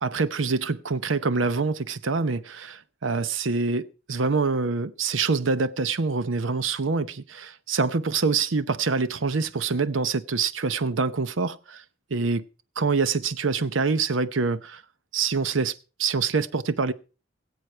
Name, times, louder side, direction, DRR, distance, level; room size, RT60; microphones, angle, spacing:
voice 1, 0.0-11.8 12.1-12.5 12.8-14.8 15.1-15.7 16.0-16.9, right 4 dB, 85° right, 0.8 m, -25 dB
21.0 x 8.1 x 4.4 m
head